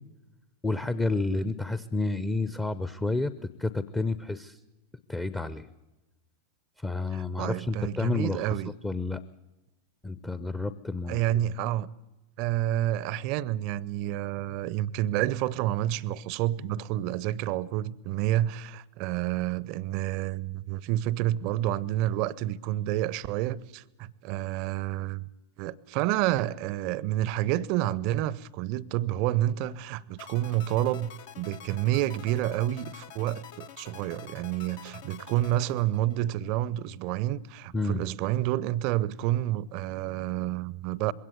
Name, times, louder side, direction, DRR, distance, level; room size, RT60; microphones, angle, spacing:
voice 1, 0.6-3.3 3.6-4.6 5.1-5.7 6.8-8.4 8.8-9.2 10.0-11.2 37.7-38.0, left 3 dB, 10° left, 0.7 m, -30 dB
voice 2, 7.1-8.7 11.1-11.9 12.4-25.3 25.6-31.1 31.4-41.1, right 13 dB, 45° right, 0.7 m, -29 dB
sound 1, 30.2-36.5, left 9 dB, 50° left, 0.9 m, -47 dB
21.5 x 17.0 x 8.0 m
figure-of-eight pair, 90°, 0 cm